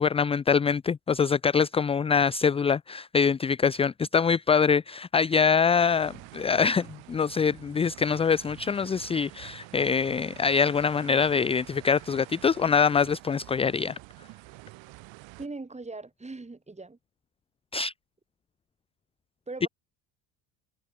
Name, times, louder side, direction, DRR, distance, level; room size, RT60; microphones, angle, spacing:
voice 1, 0.0-14.0 17.7-17.9 19.6-19.7, left 6 dB, 15° left, 0.4 m, -24 dB
sound 1, 5.8-15.5, right 22 dB, 70° right, 6.5 m, -48 dB
voice 2, 15.4-17.0 19.5-19.7, right 3 dB, 15° right, 7.8 m, -40 dB
supercardioid pair, 100°, 46 cm